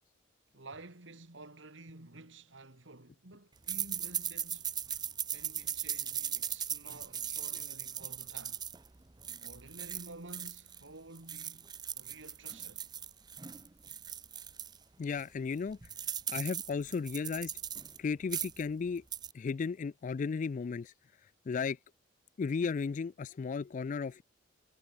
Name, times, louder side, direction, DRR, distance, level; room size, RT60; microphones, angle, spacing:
voice 1, 0.5-4.7 5.3-8.7 9.4-11.7 11.9-12.8, right 2 dB, 80° right, 2.6 m, -51 dB
sound 1, 3.7-10.8 11.2-14.8 15.2-15.3 15.5-18.0 18.2-18.7 19.0-19.3, right 8 dB, 20° right, 0.6 m, -39 dB
voice 2, 15.0-15.8 16.3-17.5 18.0-19.0 19.3-20.9 21.5-21.8 22.4-24.2, left 5 dB, 40° left, 0.3 m, -34 dB
head